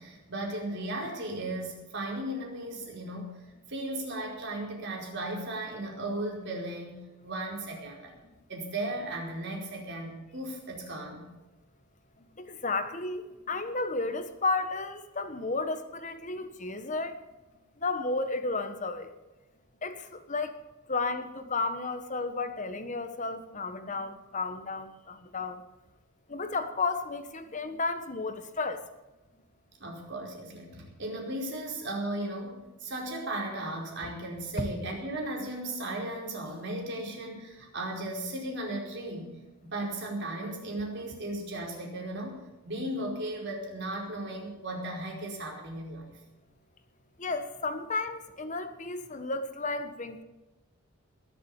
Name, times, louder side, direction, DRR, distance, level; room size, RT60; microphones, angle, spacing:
voice 1, 0.0-3.3 3.7-8.1 8.5-11.3 29.8-39.3 39.6-46.0, right 1 dB, 55° right, -1 dB, 4.8 m, -36 dB
voice 2, 12.3-17.2 17.8-19.1 19.8-20.6 20.9-25.6 26.3-28.8 34.0-34.1 47.2-50.2, left 3 dB, 35° left, 9 dB, 1.4 m, -33 dB
20.5 x 7.6 x 7.4 m, 1.1 s
head